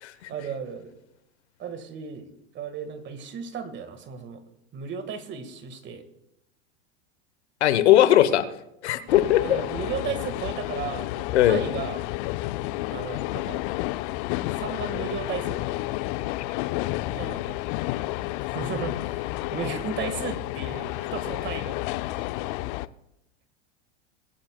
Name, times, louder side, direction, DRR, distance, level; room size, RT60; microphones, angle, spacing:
voice 1, 0.3-0.9 1.6-4.4 4.7-6.0 9.4-12.1 12.9-13.6 14.5-15.8 17.1-17.6 18.4-22.3, right 6 dB, 35° right, 10 dB, 1.6 m, -35 dB
voice 2, 7.6-8.4 8.8-9.6 11.3-11.6, left 12 dB, 80° left, 12 dB, 1.0 m, -19 dB
sound 1, 9.1-22.9, left 18 dB, 50° left, 0.5 m, -31 dB
23.5 x 9.9 x 2.2 m, 0.85 s
hypercardioid pair, 110°, 33 cm